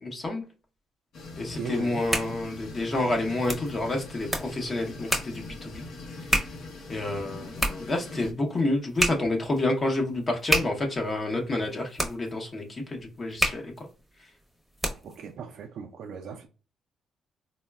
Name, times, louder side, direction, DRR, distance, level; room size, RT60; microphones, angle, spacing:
voice 1, 0.0-0.4 1.4-5.8 6.9-13.9, left 2 dB, 35° left, 0.7 m, -29 dB
sound 1, 1.1-8.3, left 3 dB, 75° left, 0.7 m, -42 dB
voice 2, 1.5-2.0 15.0-16.5, right 6 dB, 70° right, 0.3 m, -38 dB
sound 2, 1.8-15.3, right 1 dB, ahead, 0.7 m, -32 dB
3.8 x 2.1 x 2.2 m
cardioid pair, 90°, 0 cm